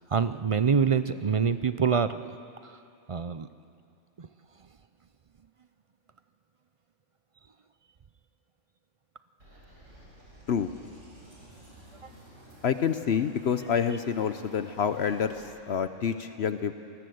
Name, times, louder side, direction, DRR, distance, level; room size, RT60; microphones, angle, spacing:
voice 1, 0.0-2.3 3.1-3.5 4.2-4.3, right 6 dB, 45° right, 12 dB, 0.4 m, -25 dB
sound 1, 9.4-15.5, equal, 90° right, 5.5 m, -51 dB
voice 2, 12.6-16.7, left 7 dB, 60° left, 10 dB, 1.0 m, -28 dB
27.0 x 19.0 x 7.9 m, 2.6 s
omnidirectional pair, 1.3 m